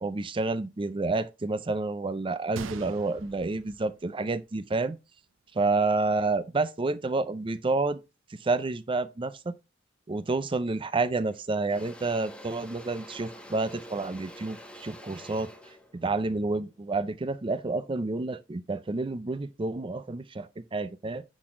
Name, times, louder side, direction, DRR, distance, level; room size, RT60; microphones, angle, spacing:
voice 1, 0.0-5.0 5.5-8.0 8.3-9.5 10.1-15.5 15.9-21.2, right 3 dB, 25° right, 0.5 m, -29 dB
Gunshot gunfire, 2.5-4.6 4.9-5.0 5.6-5.8, right 6 dB, 85° right, 0.5 m, -43 dB
Engine / Drill, 10.7-11.0 11.3-17.4, equal, 5° left, 1.0 m, -47 dB
10.0 x 4.1 x 3.7 m
head